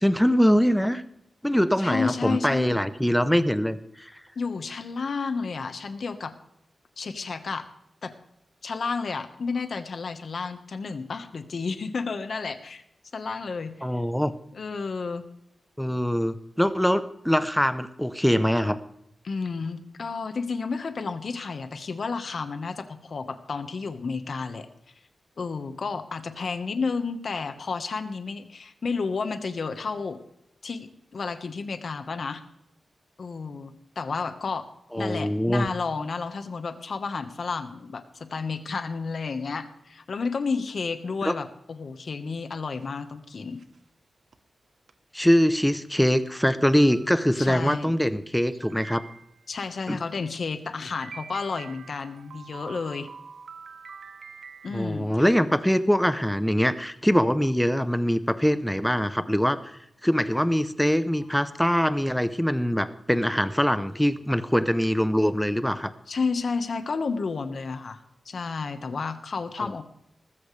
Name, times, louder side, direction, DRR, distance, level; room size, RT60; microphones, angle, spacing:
voice 1, 0.0-1.0 1.4-4.1 13.8-14.3 15.8-18.8 34.9-35.7 41.2-41.3 45.1-49.0 49.9-50.0 54.7-65.9 69.6-69.7, equal, 5° left, 12 dB, 0.7 m, -23 dB
voice 2, 1.8-2.8 4.3-6.3 7.0-7.6 8.0-8.1 8.6-12.8 13.1-13.7 14.5-15.2 19.2-24.7 25.4-30.2 30.6-32.4 33.2-34.7 35.0-43.6 47.4-47.9 49.5-53.1 54.6-55.1 66.1-68.0 68.2-69.8, left 4 dB, 55° left, 9 dB, 1.3 m, -31 dB
sound 1, 42.4-43.0 43.6-43.8 44.3-44.4 44.9-45.0 45.6-45.7 46.3-46.4 46.6-47.4 48.6-49.5 51.0-55.2, right 5 dB, 70° right, 1.1 m, -45 dB
19.5 x 14.5 x 3.3 m, 0.79 s
wide cardioid pair, 175°, 0 cm